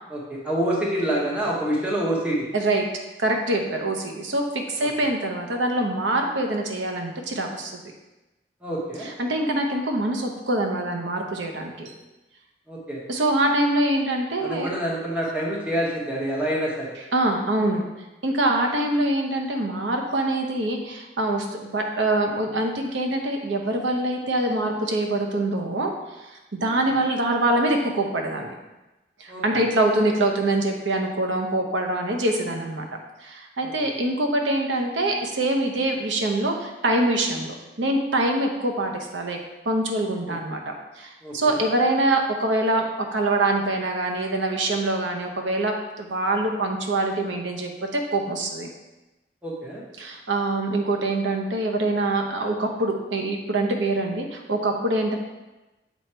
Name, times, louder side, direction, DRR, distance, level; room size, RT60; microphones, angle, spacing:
voice 1, 0.1-2.5 4.8-4.9 8.6-9.1 12.7-13.0 14.4-16.9 27.0-27.1 29.3-29.6 33.6-33.9 40.3-40.4 41.2-41.6 49.4-49.8, right 1 dB, 5° right, -5 dB, 1.2 m, -27 dB
voice 2, 2.5-2.8 3.2-7.8 9.0-11.9 13.1-14.7 17.1-17.8 18.2-25.9 26.5-28.5 29.2-32.9 33.2-39.4 39.6-48.7 50.0-55.2, right 1 dB, 85° right, 3 dB, 0.8 m, -24 dB
7.0 x 3.1 x 4.4 m, 1.1 s
head